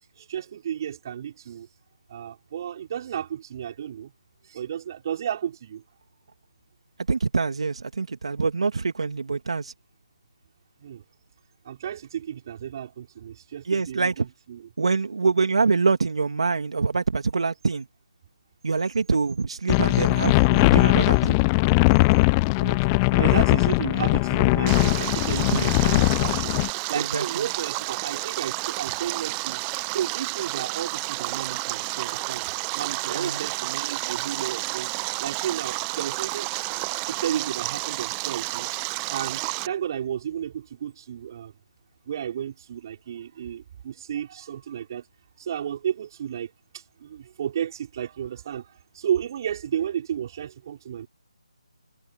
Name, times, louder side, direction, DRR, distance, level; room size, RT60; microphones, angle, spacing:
voice 1, 0.2-1.7 2.1-4.1 4.5-5.8 10.8-11.0 11.6-14.7 22.6-22.8 23.1-29.6 29.9-32.4 32.7-34.9 35.2-36.5 37.1-38.7 39.1-41.5 42.1-45.0 45.4-48.7 48.9-51.1, right 9 dB, 35° right, 4.8 m, -32 dB
voice 2, 7.1-9.7 13.6-14.2 14.8-17.9 18.6-21.4 25.5-25.9 26.9-27.5 33.1-33.4, right 4 dB, 65° right, 2.9 m, -25 dB
sound 1, 19.7-26.7, left 27 dB, 20° left, 0.7 m, -20 dB
Stream, 24.7-39.7, right 31 dB, 15° right, 0.8 m, -31 dB
figure-of-eight pair, 155°, 3 cm